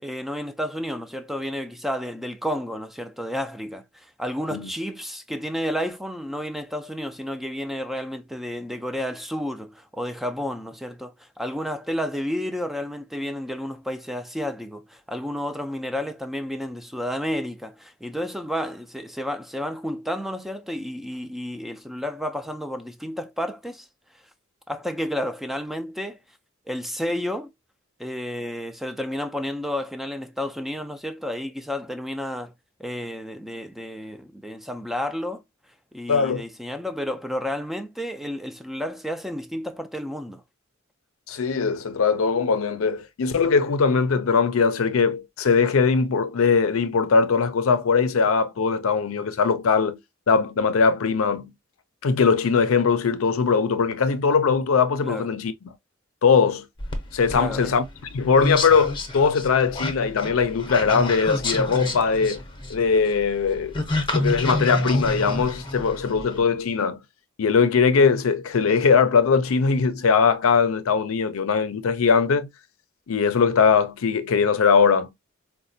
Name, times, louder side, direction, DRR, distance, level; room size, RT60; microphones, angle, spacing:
voice 1, 0.0-23.9 24.7-26.2 26.7-27.5 28.0-32.5 32.8-35.4 35.9-40.4 55.0-55.3 57.3-57.8, equal, ahead, 0.3 m, -31 dB
voice 2, 36.1-36.4 41.3-50.0 50.3-51.5 52.0-55.7 56.2-56.7 57.1-57.8 58.1-62.4 62.7-63.7 64.1-67.0 67.4-72.5 73.1-75.1, left 5 dB, 90° left, 0.5 m, -20 dB
sound 1, 56.8-66.4, left 1 dB, 25° left, 0.7 m, -28 dB
4.1 x 2.2 x 2.5 m
head